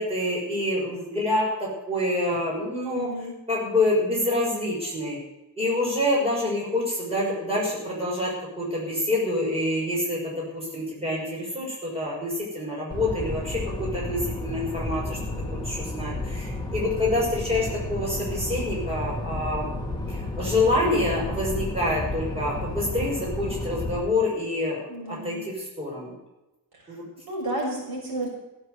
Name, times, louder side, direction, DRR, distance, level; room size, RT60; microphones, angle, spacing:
voice 1, 0.0-3.1 3.5-5.2 5.6-15.2 15.5-19.7 20.1-24.8 25.1-26.2 26.9-27.0, left 1 dB, 15° right, -5 dB, 6.0 m, -27 dB
voice 2, 2.9-3.3 24.9-25.4 26.7-27.0 27.3-28.3, right 1 dB, 65° right, -2 dB, 6.7 m, -32 dB
sound 1, 12.9-24.0, left 2 dB, 10° left, 1.8 m, -32 dB
16.0 x 8.6 x 8.0 m, 0.99 s
wide cardioid pair, 155°, 39 cm